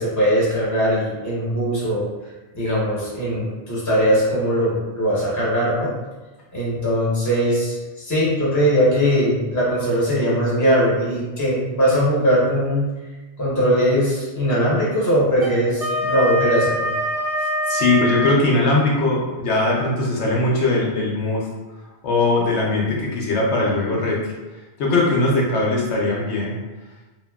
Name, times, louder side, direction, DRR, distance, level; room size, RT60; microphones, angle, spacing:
voice 1, 0.0-2.0 2.5-5.9 6.5-12.9 13.4-16.9, equal, 20° left, -7 dB, 0.7 m, -20 dB
Wind instrument woodwind instrument, 15.3-18.4, equal, 50° right, 0.4 m, -24 dB
voice 2, 17.7-21.5 22.0-24.2 24.8-26.6, left 2 dB, 75° left, -3 dB, 0.8 m, -20 dB
2.8 x 2.6 x 2.2 m, 1.2 s
omnidirectional pair, 1.2 m